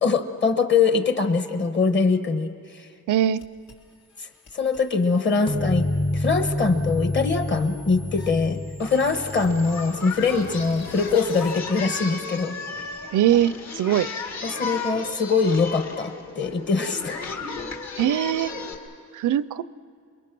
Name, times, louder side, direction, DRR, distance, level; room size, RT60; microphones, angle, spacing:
voice 1, 0.0-2.9 4.2-4.3 4.5-12.6 14.4-17.2, left 4 dB, 35° left, 8 dB, 1.2 m, -23 dB
voice 2, 3.1-3.4 13.1-14.1 18.0-18.5 19.1-19.6, right 11 dB, 75° right, 18 dB, 0.5 m, -21 dB
sound 1, 3.4-11.5, left 2 dB, 80° left, 2.5 m, -49 dB
sound 2, 5.5-11.0, left 1 dB, 15° left, 0.5 m, -29 dB
Singing, 8.8-18.7, left 4 dB, 60° left, 2.0 m, -35 dB
27.5 x 22.5 x 6.1 m, 2.2 s
wide cardioid pair, 160°, 31 cm